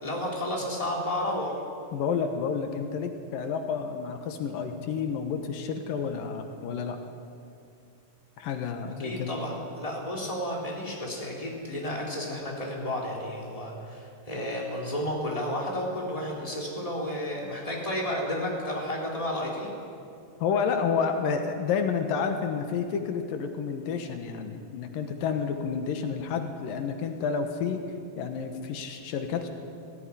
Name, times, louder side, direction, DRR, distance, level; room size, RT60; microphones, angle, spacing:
voice 1, 0.0-1.5 9.0-19.7, left 1 dB, 10° left, -2 dB, 3.6 m, -32 dB
voice 2, 1.9-7.0 8.4-9.4 20.4-27.8 28.2-29.5, left 6 dB, 80° left, 6 dB, 2.9 m, -30 dB
19.0 x 15.0 x 9.9 m, 2.5 s
omnidirectional pair, 3.9 m